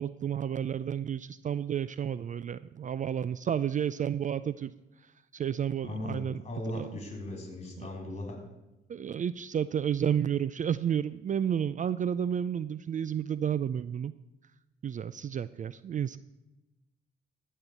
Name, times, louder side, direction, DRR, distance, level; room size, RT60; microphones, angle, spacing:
voice 1, 0.0-4.7 5.3-6.4 6.7-6.9 7.8-7.9 8.9-14.1 14.8-16.2, right 9 dB, 40° right, 16 dB, 0.4 m, -31 dB
voice 2, 5.8-8.4, left 1 dB, 30° left, 3 dB, 3.7 m, -38 dB
13.5 x 5.6 x 8.1 m, 0.99 s
cardioid pair, 90°, 20 cm